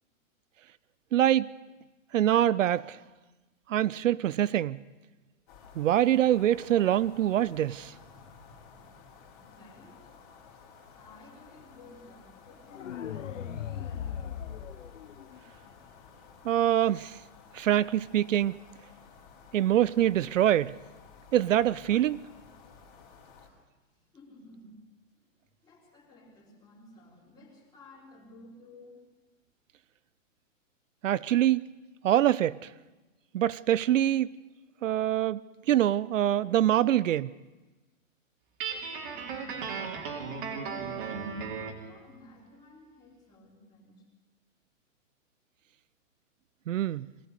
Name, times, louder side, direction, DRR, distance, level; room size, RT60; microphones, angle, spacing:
voice 1, 1.1-1.5 2.1-3.0 3.7-4.8 5.8-7.9 16.5-17.1 17.5-18.5 19.5-20.7 21.3-22.2 31.0-31.6 32.0-32.6 33.3-34.3 34.8-35.4 35.7-37.3 46.7-47.1, right 12 dB, 70° right, 0.6 m, -24 dB
sound 1, 5.5-23.5, left 5 dB, 30° left, 3.6 m, -54 dB
voice 2, 9.5-10.1 11.0-14.4 24.1-24.8 25.6-29.0 38.9-39.8 40.2-41.2 41.8-44.0, left 2 dB, 10° left, 3.6 m, -53 dB
sound 2, 12.7-15.7, left 9 dB, 65° left, 1.1 m, -38 dB
Guitar, 38.6-41.8, right 5 dB, 40° right, 2.6 m, -36 dB
23.0 x 17.5 x 6.6 m
hypercardioid pair, 165°, 40 cm